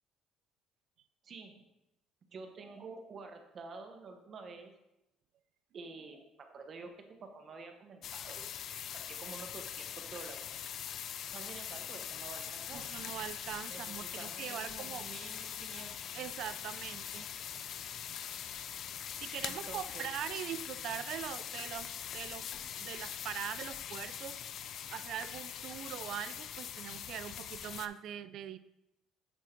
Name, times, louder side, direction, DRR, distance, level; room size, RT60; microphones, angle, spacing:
voice 1, 2.3-4.7 5.7-8.4 8.9-10.4 11.3-12.9 13.7-16.0 19.5-20.1, right 4 dB, 45° right, 5 dB, 1.0 m, -49 dB
sound 1, 8.0-27.9, left 9 dB, 55° left, 0.4 m, -42 dB
sound 2, 12.6-27.6, left 6 dB, 80° left, 1.0 m, -57 dB
voice 2, 12.7-15.1 16.1-17.3 17.5-17.6 18.1-18.2 19.2-22.5 22.8-28.6, right 10 dB, 65° right, 14 dB, 0.4 m, -42 dB
8.0 x 3.6 x 4.4 m, 0.90 s
cardioid pair, 115°, 0 cm